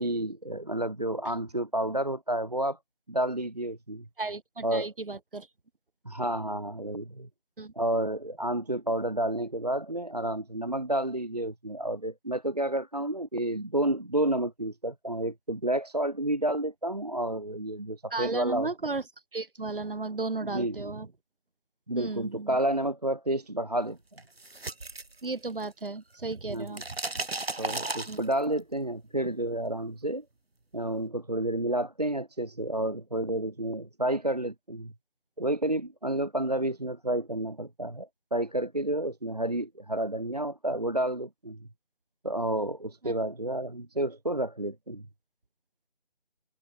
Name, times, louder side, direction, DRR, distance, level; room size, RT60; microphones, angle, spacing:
voice 1, 0.0-2.8 3.1-4.1 4.6-4.9 6.1-7.3 7.8-18.7 20.4-20.9 21.9-24.2 26.5-26.8 27.6-30.2 30.7-34.9 35.4-41.7 42.2-45.0, right 1 dB, 40° right, 0.4 m, -30 dB
voice 2, 4.2-5.5 7.6-7.7 18.1-19.0 19.3-21.1 21.9-22.6 25.2-26.8 28.1-28.3 43.0-43.1, right 3 dB, 60° right, 2.1 m, -34 dB
sound 1, 24.2-25.9 26.1-28.6, right 2 dB, 80° right, 3.5 m, -35 dB
figure-of-eight pair, 170°, 31 cm